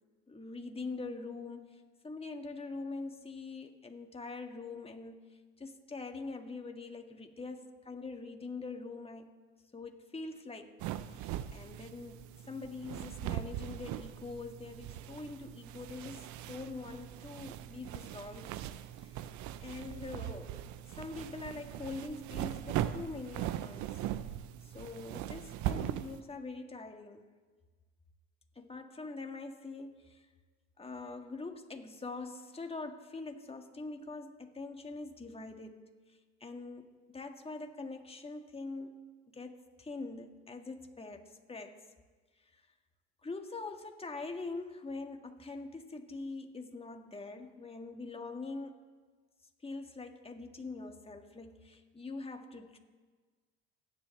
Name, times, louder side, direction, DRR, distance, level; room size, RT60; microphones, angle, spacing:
voice 1, 0.3-5.2 5.6-9.3 9.7-10.7 11.1-12.2 12.5-18.5 19.0-19.3 19.6-24.0 24.6-27.2 28.6-30.3 30.8-35.8 36.1-41.8 42.5-42.6 43.2-48.8 49.6-52.8, left 3 dB, 20° left, 4 dB, 1.8 m, -44 dB
sound 1, 10.8-26.2, right 12 dB, 60° right, 0.8 m, -40 dB
28.5 x 10.5 x 3.3 m, 1.4 s
hypercardioid pair, 75°, 33 cm